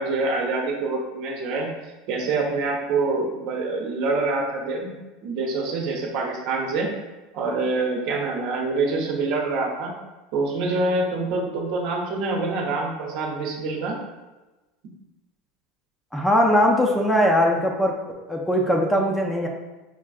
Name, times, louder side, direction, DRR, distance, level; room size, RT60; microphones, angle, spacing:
voice 1, 0.0-1.7 2.1-6.9 7.3-9.9 10.3-14.0, right 3 dB, 60° right, 0 dB, 0.8 m, -26 dB
voice 2, 16.1-18.0 18.3-19.5, equal, 10° left, 0 dB, 0.5 m, -20 dB
4.6 x 2.5 x 2.3 m, 1.1 s
supercardioid pair, 120°, 0 cm